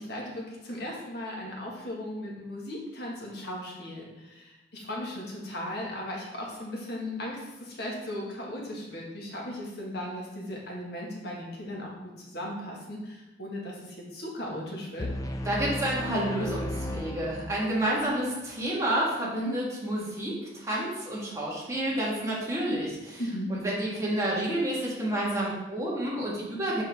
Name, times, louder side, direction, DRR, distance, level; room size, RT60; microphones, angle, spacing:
voice 1, 0.0-15.1 23.2-23.5, left 1 dB, 65° left, -3 dB, 1.7 m, -37 dB
sound 1, 15.0-17.9, left 1 dB, 20° left, 0.5 m, -34 dB
voice 2, 15.4-23.2 23.5-26.8, right 1 dB, 20° right, -5 dB, 1.6 m, -29 dB
6.8 x 4.7 x 3.5 m, 1.0 s
head